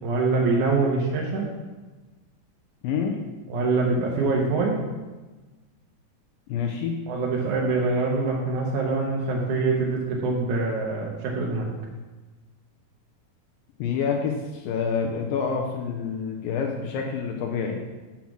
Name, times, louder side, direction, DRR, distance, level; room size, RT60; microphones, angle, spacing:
voice 1, 0.0-1.5 3.5-4.8 7.1-11.7, right 3 dB, 70° right, -3 dB, 2.2 m, -24 dB
voice 2, 2.8-3.2 6.5-7.0 13.8-17.8, left 6 dB, 80° left, 1 dB, 2.3 m, -27 dB
7.4 x 5.8 x 6.0 m, 1.2 s
omnidirectional pair, 4.3 m